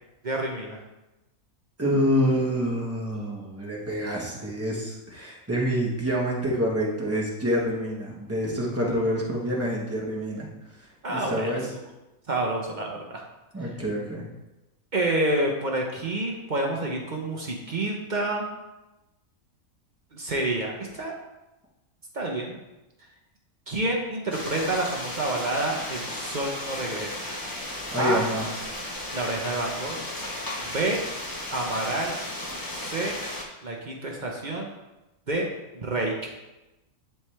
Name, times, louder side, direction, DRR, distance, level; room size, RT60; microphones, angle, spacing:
voice 1, 0.2-0.8 11.0-11.5 12.3-13.2 14.9-18.5 20.1-21.2 22.1-22.6 23.7-27.2 28.0-28.2 29.1-30.0 30.6-31.0 31.5-32.1 32.7-33.2 33.6-34.7 35.3-35.5 35.7-36.1, right 2 dB, 40° right, 0 dB, 0.8 m, -28 dB
voice 2, 1.8-10.5 11.1-11.7 13.5-14.2 27.9-28.4, equal, 10° right, -3 dB, 1.1 m, -27 dB
sound 1, 24.3-33.4, left 1 dB, 20° left, 0.8 m, -35 dB
10.5 x 3.4 x 3.3 m, 1.0 s
omnidirectional pair, 1.5 m